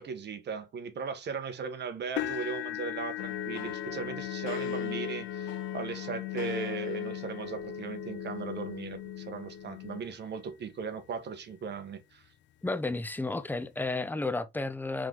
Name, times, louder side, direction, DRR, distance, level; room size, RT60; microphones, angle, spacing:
voice 1, 0.0-12.2, right 5 dB, 60° right, 1.3 m, -38 dB
sound 1, 2.2-10.2 10.8-11.1 11.5-11.6 13.0-13.1, left 14 dB, 65° left, 0.4 m, -41 dB
sound 2, 3.2-10.0, left 8 dB, 85° left, 0.9 m, -37 dB
voice 2, 12.6-15.1, left 2 dB, 10° left, 0.7 m, -32 dB
4.6 x 3.8 x 3.0 m
cardioid pair, 90°, 20 cm